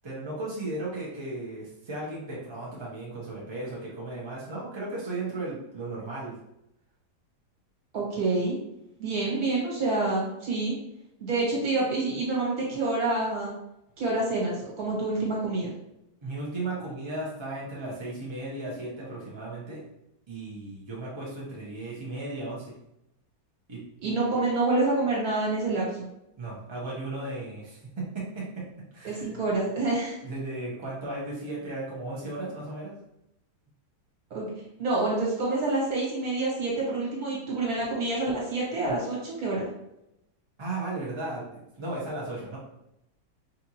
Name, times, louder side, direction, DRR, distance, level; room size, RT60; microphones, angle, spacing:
voice 1, 0.0-6.4 16.2-19.8 20.3-22.7 23.7-23.8 26.4-28.6 28.9-29.3 30.2-33.0 40.6-42.6, right 2 dB, 35° right, -6 dB, 0.4 m, -35 dB
voice 2, 7.9-8.6 9.0-10.7 11.2-13.5 14.0-15.7 24.0-26.1 29.0-30.1 34.3-34.5 34.8-39.7, right 2 dB, 60° right, -5 dB, 1.8 m, -27 dB
5.0 x 2.5 x 2.9 m, 0.85 s
omnidirectional pair, 1.9 m